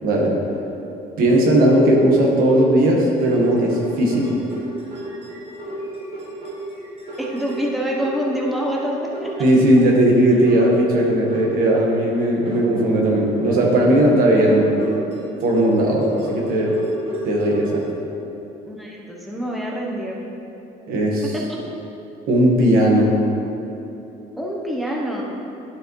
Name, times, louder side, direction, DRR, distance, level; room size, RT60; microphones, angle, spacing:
voice 1, 0.0-0.3 1.2-4.4 9.4-14.7 15.4-16.7 17.2-17.8 20.9-21.3 22.3-23.2, right 1 dB, 65° right, -1 dB, 1.5 m, -17 dB
sound 1, 3.0-8.8 9.1-9.9 10.4-12.0 12.4-17.8, right 1 dB, 40° right, 1.5 m, -33 dB
voice 2, 7.2-9.5 10.5-10.6 18.7-20.2 21.3-21.5 24.4-25.2, equal, ahead, -3 dB, 0.8 m, -26 dB
11.5 x 4.9 x 3.1 m, 3.0 s
cardioid pair, 110°, 16 cm